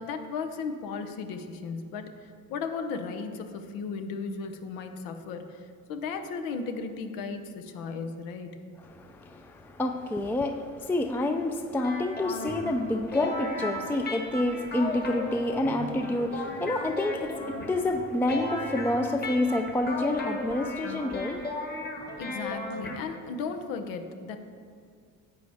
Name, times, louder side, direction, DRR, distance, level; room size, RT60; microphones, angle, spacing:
voice 1, 0.0-2.1 2.5-8.6 22.2-24.4, left 5 dB, 90° left, 7 dB, 0.8 m, -35 dB
voice 2, 8.8-21.4, left 1 dB, 5° left, 5 dB, 0.4 m, -28 dB
sound 1, 11.8-23.0, left 2 dB, 30° left, 1.4 m, -36 dB
10.5 x 7.9 x 3.5 m, 2.1 s
cardioid pair, 110°, 33 cm